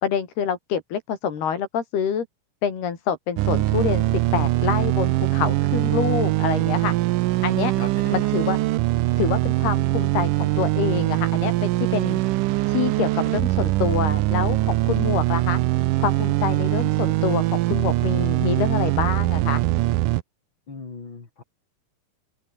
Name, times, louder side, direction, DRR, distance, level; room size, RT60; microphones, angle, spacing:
voice 1, 0.0-2.3 2.6-4.0 4.3-7.0 7.4-7.7 8.1-8.6 9.2-12.2 12.7-15.6 16.0-19.6, left 7 dB, 90° left, 5.5 m, -26 dB
sound 1, 3.4-20.2, right 17 dB, 75° right, 2.0 m, -22 dB
voice 2, 7.8-8.1 20.7-21.4, left 3 dB, 30° left, 3.8 m, -38 dB
omnidirectional pair, 4.4 m